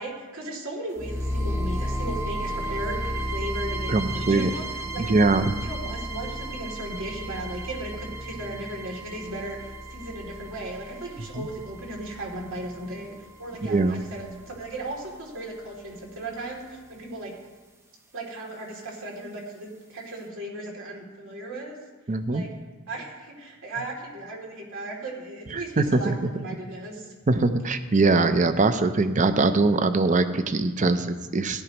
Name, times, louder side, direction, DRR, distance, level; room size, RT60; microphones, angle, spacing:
voice 1, 0.0-4.7 4.9-5.0 5.5-17.3 18.1-21.7 22.3-22.5 22.9-27.1, right 1 dB, 65° right, -2 dB, 2.8 m, -36 dB
sound 1, 1.0-15.0, equal, 10° right, 0.8 m, -33 dB
voice 2, 3.9-4.5 5.0-5.5 11.3-11.5 13.6-14.0 22.1-22.4 25.5-26.3 27.3-31.6, right 3 dB, 35° right, 10 dB, 0.6 m, -22 dB
16.0 x 11.5 x 3.0 m, 1.3 s
head